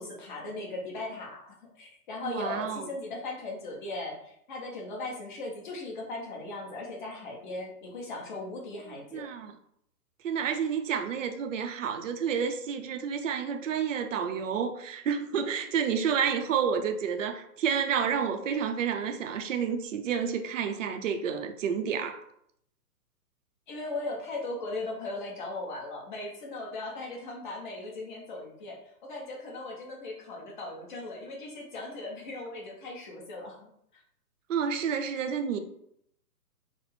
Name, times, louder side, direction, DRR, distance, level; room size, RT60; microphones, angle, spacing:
voice 1, 0.0-9.3 23.7-34.0, left 2 dB, 30° left, 0.9 m, -38 dB
voice 2, 2.2-2.9 9.1-9.5 10.2-22.3 34.5-35.6, right 7 dB, 50° right, 0.6 m, -30 dB
4.3 x 2.1 x 4.3 m
hypercardioid pair, 160°, 48 cm